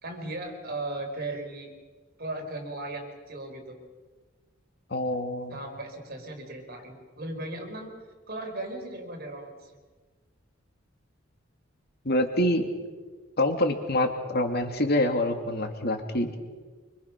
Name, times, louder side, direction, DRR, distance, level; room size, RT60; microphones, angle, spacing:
voice 1, 0.0-1.7 2.2-3.8 5.5-7.9 8.3-9.8, right 2 dB, 50° right, 3 dB, 4.9 m, -37 dB
voice 2, 4.9-5.6 12.0-12.7 13.4-16.3, left 1 dB, 55° left, 5 dB, 2.6 m, -26 dB
25.5 x 25.0 x 6.1 m, 1.4 s
head